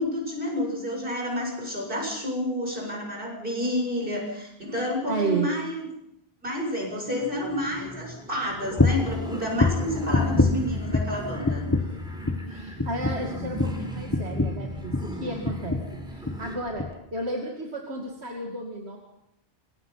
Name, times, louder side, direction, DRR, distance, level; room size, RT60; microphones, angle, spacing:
voice 1, 0.0-5.8 6.4-11.7, left 1 dB, 55° right, 0 dB, 7.7 m, -29 dB
voice 2, 5.1-5.5 12.5-19.0, right 2 dB, 80° right, 1 dB, 2.8 m, -33 dB
sound 1, 6.9-16.6, equal, 5° right, 4.3 m, -38 dB
sound 2, 8.8-9.1 9.6-11.2 11.4-12.0 12.2-12.5 12.8-15.2 15.4-15.9 16.2-16.4 16.8-16.9, left 2 dB, 15° left, 1.2 m, -25 dB
27.0 x 21.5 x 5.8 m, 0.84 s
omnidirectional pair, 1.1 m